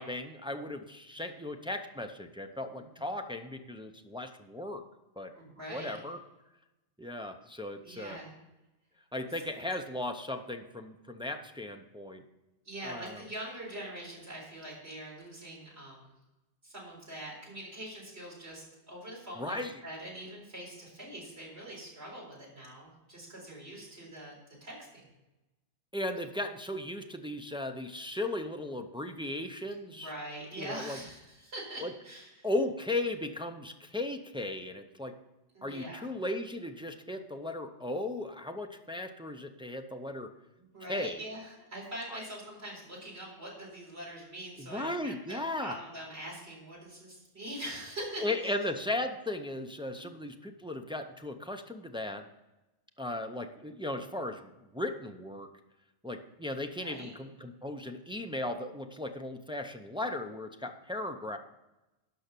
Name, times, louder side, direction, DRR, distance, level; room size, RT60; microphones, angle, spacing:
voice 1, 0.0-4.8 5.2-5.3 5.7-6.2 7.0-8.2 9.1-12.2 12.8-13.2 19.4-19.8 25.9-30.1 30.6-31.0 31.8-31.9 32.4-35.1 35.6-40.3 40.9-41.2 42.1-42.2 44.6-45.8 48.2-52.2 53.0-55.5 56.0-61.4, left 1 dB, 5° right, 5 dB, 0.5 m, -36 dB
voice 2, 5.3-6.0 7.8-8.3 12.6-16.1 16.6-19.6 19.8-25.1 29.9-32.5 35.5-36.1 40.6-48.5 49.9-50.1 56.8-57.1, right 1 dB, 70° right, -4 dB, 4.5 m, -43 dB
12.0 x 5.6 x 6.8 m, 1.0 s
omnidirectional pair, 1.1 m